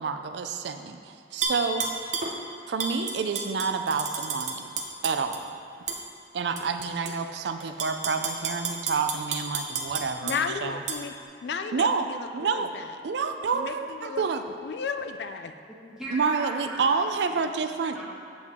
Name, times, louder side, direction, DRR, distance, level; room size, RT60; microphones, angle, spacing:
voice 1, 0.0-2.1 2.7-4.7 5.0-5.4 6.3-10.3 10.6-10.8 11.7-12.1 12.3-12.7 13.0-14.4 16.1-18.0, right 5 dB, 75° right, 8 dB, 0.4 m, -28 dB
Tap / Glass, 1.4-2.3 2.8-5.4 5.9-6.0 6.6-7.1 7.6-10.4 10.9-11.0, right 5 dB, 45° right, 0.7 m, -31 dB
voice 2, 10.2-11.1 11.4-13.0 13.5-14.3 14.6-15.5, left 5 dB, 70° left, 8 dB, 0.4 m, -33 dB
voice 3, 15.7-16.9 17.2-17.4 17.9-18.2, right 1 dB, ahead, -9 dB, 1.9 m, -38 dB
8.1 x 7.8 x 3.6 m, 2.4 s
head